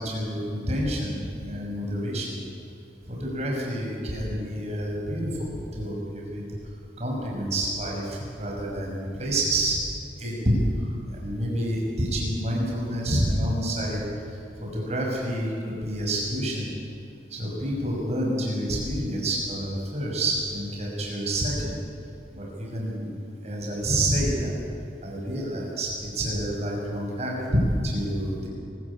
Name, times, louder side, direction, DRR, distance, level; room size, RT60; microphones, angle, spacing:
voice 1, 0.0-2.4 3.1-6.4 7.0-9.8 10.2-10.5 11.1-14.0 14.3-16.7 17.3-21.8 22.3-23.1 23.4-24.5 25.0-28.5, right 1 dB, 35° right, -2 dB, 5.8 m, -28 dB
22.5 x 14.0 x 8.6 m, 2.7 s
head